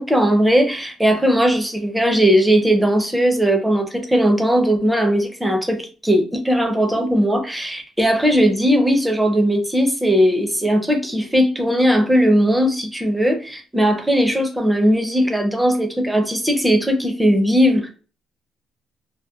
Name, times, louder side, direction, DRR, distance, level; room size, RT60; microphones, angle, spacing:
voice 1, 0.0-17.9, equal, 5° right, 0.5 m, -18 dB
2.7 x 2.1 x 2.3 m
cardioid pair, 130°, 0 cm